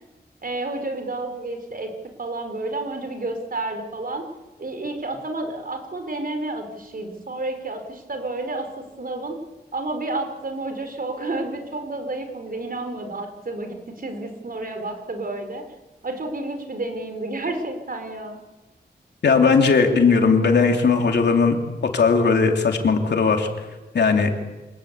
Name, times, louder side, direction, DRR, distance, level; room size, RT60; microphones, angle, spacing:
voice 1, 0.4-1.9 2.2-4.2 4.6-9.4 9.7-15.6 16.0-18.4, right 2 dB, 55° right, 6 dB, 4.7 m, -30 dB
voice 2, 19.2-21.6 21.9-23.5 23.9-24.3, left 5 dB, 85° left, 3 dB, 3.2 m, -18 dB
26.0 x 20.0 x 8.3 m, 1.2 s
cardioid pair, 55°, 17 cm